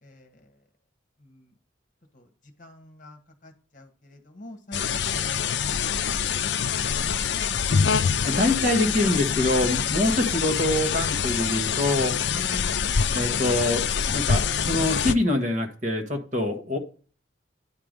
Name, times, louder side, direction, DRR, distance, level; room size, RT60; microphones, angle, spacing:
voice 1, 0.0-0.5 1.2-1.5 2.1-2.3 2.6-5.4 7.0-7.2 12.3-13.0, left 1 dB, 40° left, 4 dB, 1.4 m, -45 dB
sound 1, 4.7-15.1, left 7 dB, 65° left, 0.5 m, -25 dB
voice 2, 8.3-12.1 13.1-16.8, left 1 dB, 40° right, 3 dB, 1.5 m, -25 dB
9.7 x 4.7 x 5.2 m, 0.39 s
head